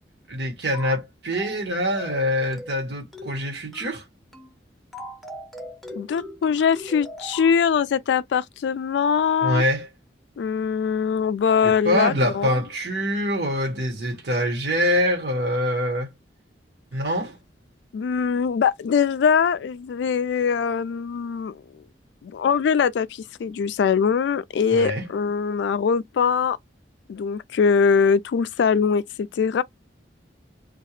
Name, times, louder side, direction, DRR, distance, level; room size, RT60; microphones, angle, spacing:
voice 1, 0.3-4.0 9.4-9.9 11.6-16.1 16.9-17.4 24.7-25.0, equal, 65° right, 1.2 m, -24 dB
sound 1, 0.7-1.0 1.3-1.6 1.9-2.2 2.5-2.8 3.1-3.4 3.7-4.0 4.3-4.6 4.9-7.6, left 1 dB, ahead, 0.6 m, -39 dB
voice 2, 5.9-9.6 10.4-12.5 17.9-21.6 22.2-26.6 27.1-29.6, left 6 dB, 75° left, 0.3 m, -22 dB
2.8 x 2.3 x 3.1 m
head